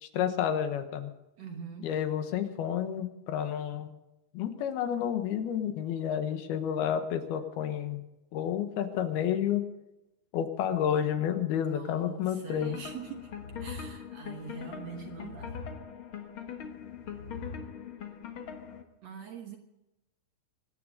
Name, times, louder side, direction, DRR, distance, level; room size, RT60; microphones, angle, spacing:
voice 1, 0.0-1.1 1.8-3.9 4.3-8.0 8.3-9.6 10.3-12.8, left 9 dB, 85° left, 8 dB, 3.2 m, -30 dB
voice 2, 1.4-1.9 11.5-13.3 13.6-15.6 19.0-19.6, right 6 dB, 60° right, 4 dB, 2.0 m, -43 dB
sound 1, 12.5-18.8, left 7 dB, 60° left, 1.4 m, -41 dB
24.5 x 10.0 x 5.3 m, 0.94 s
omnidirectional pair, 4.3 m